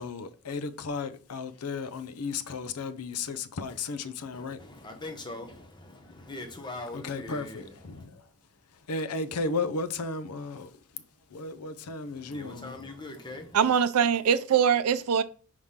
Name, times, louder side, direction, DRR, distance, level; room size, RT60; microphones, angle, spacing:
voice 1, 0.0-4.6 5.9-6.0 6.9-8.3 8.7-11.0 11.3-12.8, left 3 dB, 85° left, 0.6 m, -34 dB
voice 2, 4.3-8.0 12.0-13.6, left 2 dB, 20° left, 1.0 m, -42 dB
voice 3, 13.5-15.2, right 7 dB, 80° right, 0.4 m, -23 dB
4.8 x 3.6 x 5.6 m
head